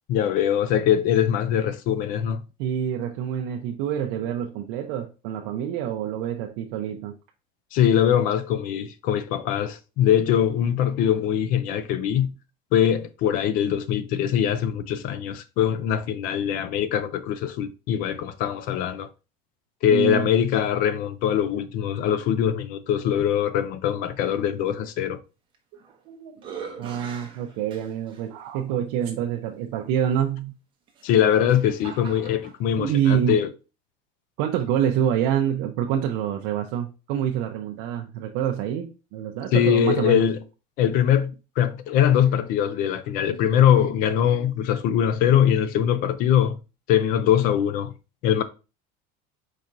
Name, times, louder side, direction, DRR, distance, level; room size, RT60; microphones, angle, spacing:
voice 1, 0.1-2.4 7.7-12.3 12.7-19.1 19.8-25.2 31.0-33.5 39.5-40.4 40.8-46.6 46.9-47.9 48.2-48.4, left 9 dB, 45° left, 0.5 m, -22 dB
voice 2, 2.6-7.1 19.9-20.3 26.1-26.5 26.8-30.5 32.8-33.4 34.4-40.3, right 9 dB, 65° right, 0.6 m, -26 dB
sound 1, 25.5-26.0 26.4-28.2 29.0-29.1 30.9-32.6, right 6 dB, 25° right, 0.8 m, -41 dB
4.6 x 4.2 x 2.5 m
cardioid pair, 175°, 20 cm